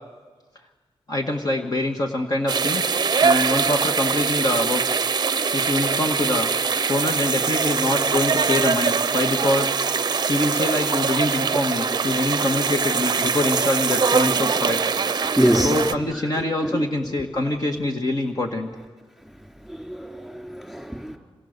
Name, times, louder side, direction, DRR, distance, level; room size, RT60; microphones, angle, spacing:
voice 1, 1.1-2.9 3.2-4.8 5.5-6.5 6.9-9.8 10.3-14.8 15.6-18.7, left 1 dB, 40° left, 2 dB, 1.7 m, -24 dB
sound 1, 2.5-15.9, right 5 dB, 45° right, 0.7 m, -23 dB
voice 2, 15.3-15.8 16.1-16.8 19.7-21.2, equal, ahead, 2 dB, 3.3 m, -25 dB
28.5 x 26.5 x 6.7 m, 1.4 s
wide cardioid pair, 115°, 10 cm